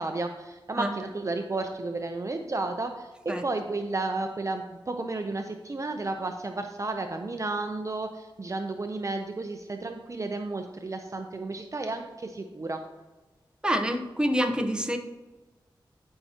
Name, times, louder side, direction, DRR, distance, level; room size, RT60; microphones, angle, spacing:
voice 1, 0.0-12.8, right 2 dB, 40° right, 5 dB, 0.6 m, -32 dB
voice 2, 13.6-15.0, equal, 10° right, 5 dB, 0.8 m, -26 dB
13.0 x 5.6 x 2.9 m, 1.1 s
wide cardioid pair, 70°, 9 cm